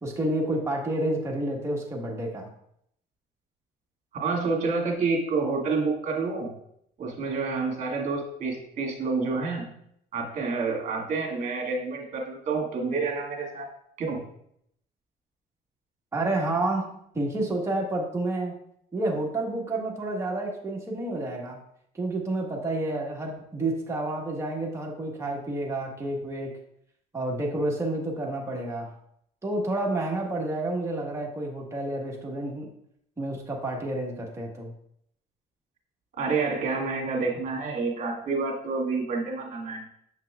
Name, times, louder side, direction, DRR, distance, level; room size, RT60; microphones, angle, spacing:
voice 1, 0.0-2.5 16.1-18.6 18.9-21.6 21.9-26.5 27.1-28.9 29.4-32.7 33.2-34.7, right 2 dB, 15° right, -2 dB, 1.5 m, -29 dB
voice 2, 4.1-6.5 7.0-9.7 10.1-13.6 14.0-14.2 36.1-39.8, right 4 dB, 45° right, -1 dB, 2.2 m, -28 dB
7.5 x 5.8 x 2.4 m, 0.71 s
cardioid pair, 110°, 17 cm